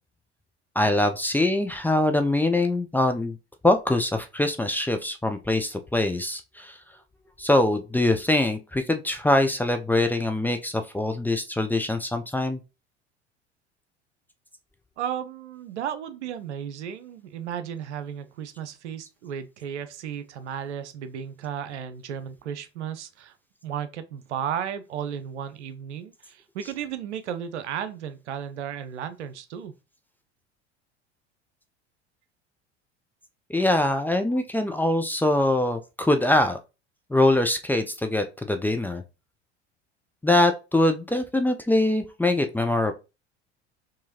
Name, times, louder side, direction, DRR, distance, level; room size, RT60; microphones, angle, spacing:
voice 1, 0.8-3.4 3.6-6.8 7.4-12.6 33.5-36.6 37.1-39.0 40.2-42.9, left 1 dB, 5° left, 0.4 m, -23 dB
voice 2, 15.0-23.3 23.6-29.8, right 9 dB, 80° right, 0.6 m, -34 dB
4.7 x 2.8 x 2.8 m
hypercardioid pair, 75°, 34 cm